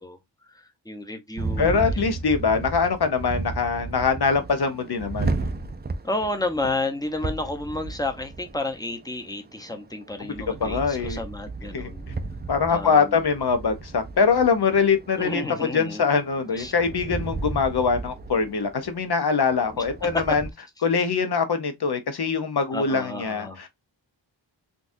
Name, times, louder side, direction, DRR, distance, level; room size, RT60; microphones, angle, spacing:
voice 1, 0.0-2.0 6.0-12.1 12.7-13.2 15.2-16.1 16.5-16.7 19.7-19.8 22.7-23.6, left 2 dB, 10° left, 0.8 m, -31 dB
sound 1, 1.4-20.5, right 3 dB, 25° right, 0.4 m, -34 dB
voice 2, 1.6-5.5 10.6-11.2 11.7-11.9 12.5-20.4 20.8-23.7, left 5 dB, 60° left, 0.8 m, -23 dB
3.9 x 2.4 x 2.6 m
wide cardioid pair, 90°, 44 cm